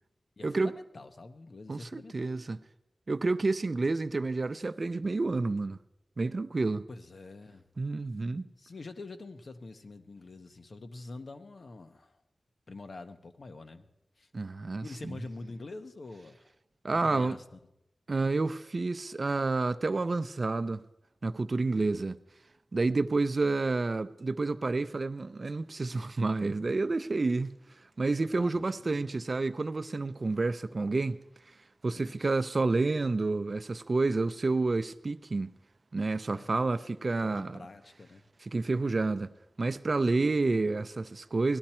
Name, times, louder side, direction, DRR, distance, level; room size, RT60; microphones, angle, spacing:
voice 1, 0.4-2.3 6.9-7.6 8.6-12.2 12.7-13.9 14.2-14.3 14.8-16.5 16.9-17.6 28.3-29.0 31.9-32.4 36.3-36.5 37.2-38.3 40.1-40.5, left 3 dB, 70° left, 0.9 m, -46 dB
voice 2, 1.7-2.6 3.1-5.8 6.2-6.9 7.8-8.5 14.3-15.2 16.8-17.4 18.1-20.8 21.2-22.2 22.7-27.6 28.0-31.2 31.8-35.5 35.9-37.6 38.4-39.3 39.6-41.6, right 3 dB, 50° right, 0.5 m, -29 dB
18.0 x 12.0 x 4.3 m
wide cardioid pair, 95°, 0 cm